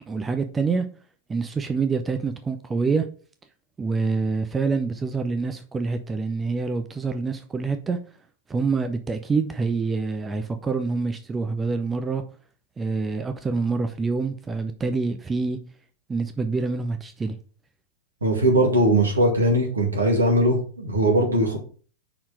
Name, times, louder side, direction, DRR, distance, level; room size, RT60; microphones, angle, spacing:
voice 1, 0.1-0.9 1.3-3.0 3.8-8.0 8.5-12.2 12.8-15.6 16.1-17.3, right 4 dB, 15° right, 0.6 m, -26 dB
voice 2, 18.2-21.6, right 1 dB, 75° right, 2.1 m, -20 dB
5.8 x 4.3 x 4.9 m
figure-of-eight pair, 90°, 0 cm